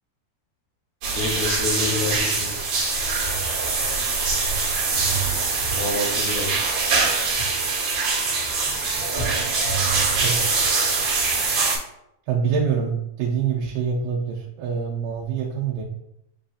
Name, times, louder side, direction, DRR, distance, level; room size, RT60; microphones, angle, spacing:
sound 1, 1.0-11.8, right 4 dB, 55° right, 2.1 m, -23 dB
voice 1, 1.1-2.5 5.8-6.6, left 3 dB, 85° left, 1 dB, 2.7 m, -28 dB
voice 2, 10.2-10.5 12.3-15.8, right 6 dB, 80° right, -3 dB, 2.2 m, -25 dB
7.7 x 2.6 x 2.4 m, 0.80 s
omnidirectional pair, 4.1 m